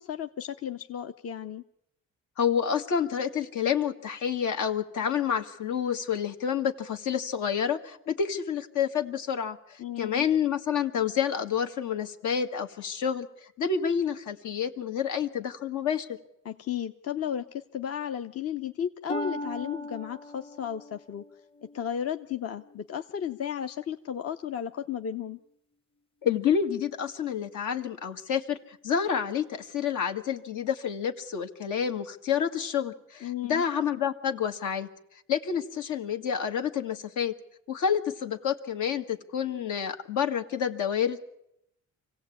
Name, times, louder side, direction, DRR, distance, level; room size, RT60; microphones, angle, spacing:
voice 1, 0.0-1.6 9.8-10.3 16.4-21.2 21.7-25.4 33.2-33.6, left 9 dB, 50° left, 8 dB, 0.8 m, -34 dB
voice 2, 2.4-13.3 13.6-16.2 26.2-34.9 35.3-37.3 37.7-41.3, left 7 dB, 80° left, 6 dB, 1.8 m, -29 dB
Harp, 19.1-22.8 23.4-23.8 24.4-24.5, left 1 dB, 20° left, 0.8 m, -39 dB
25.0 x 16.5 x 8.5 m, 0.81 s
cardioid pair, 90°, 30 cm